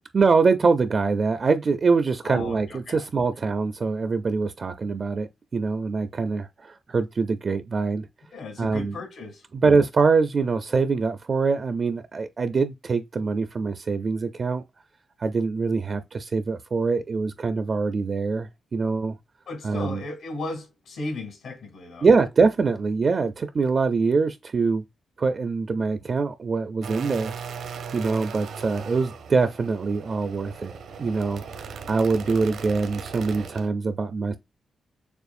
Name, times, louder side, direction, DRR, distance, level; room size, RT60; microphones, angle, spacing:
voice 1, 0.1-8.1 8.6-9.0 9.5-14.6 15.2-19.2 19.6-20.0 22.0-24.8 25.2-27.3 27.9-30.7 31.0-34.4, right 4 dB, 35° right, 0.4 m, -24 dB
voice 2, 2.2-3.1 8.3-9.4 19.5-22.1, left 2 dB, 80° left, 2.6 m, -35 dB
sound 1, 26.8-33.7, right 6 dB, 90° right, 1.0 m, -38 dB
6.8 x 2.3 x 2.5 m
wide cardioid pair, 155°, 0 cm